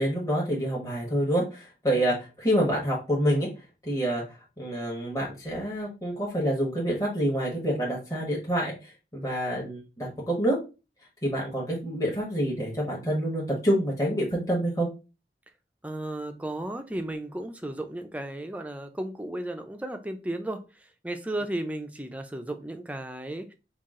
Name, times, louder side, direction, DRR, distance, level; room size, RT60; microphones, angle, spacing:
voice 1, 0.0-3.5 3.8-10.6 11.2-14.9, equal, 20° left, -4 dB, 1.2 m, -27 dB
voice 2, 15.8-23.5, right 1 dB, 10° right, 7 dB, 0.4 m, -34 dB
5.7 x 2.4 x 3.6 m, 0.30 s
head